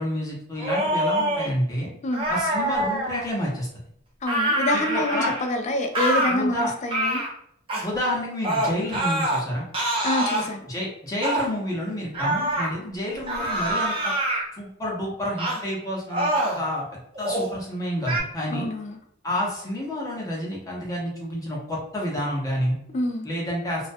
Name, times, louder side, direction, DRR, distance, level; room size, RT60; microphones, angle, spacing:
voice 1, 0.0-1.9 2.3-3.7 4.7-5.3 6.3-6.7 7.8-9.6 10.7-14.1 14.5-18.7 19.2-22.8 23.2-23.9, equal, 15° left, -4 dB, 0.7 m, -29 dB
sound 1, 0.6-1.5 2.1-3.2 4.2-5.5 5.9-6.3 6.9-7.3 7.7-7.9 8.4-9.4 9.7-10.5 11.2-11.5 12.1-12.7 13.3-14.4 15.4-15.6 16.1-16.6 17.1-17.5 18.0-18.2, right 1 dB, 25° right, 0.6 m, -25 dB
voice 2, 4.2-7.2 10.0-10.7 18.5-19.0 22.9-23.3, left 1 dB, 35° left, 4 dB, 0.3 m, -26 dB
2.4 x 2.1 x 2.5 m, 0.70 s
head